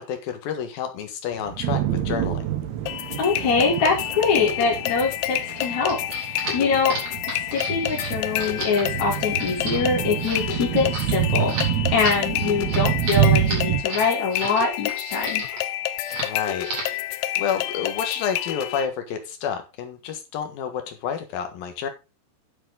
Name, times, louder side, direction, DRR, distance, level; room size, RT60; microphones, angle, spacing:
voice 1, 0.0-2.5 16.2-16.7 17.4-21.9, left 7 dB, 65° left, 6 dB, 3.0 m, -29 dB
sound 1, 1.3-13.8, right 10 dB, 70° right, 3.4 m, -27 dB
sound 2, 2.9-18.9, left 14 dB, 85° left, 2.1 m, -29 dB
voice 2, 3.2-6.9 7.5-15.4, left 4 dB, 45° left, -3 dB, 3.4 m, -24 dB
sound 3, 5.5-14.6 14.9-15.7 16.0-16.3 16.6-17.0, right 2 dB, 40° right, 4.5 m, -33 dB
10.5 x 7.6 x 3.8 m, 0.27 s
omnidirectional pair, 4.9 m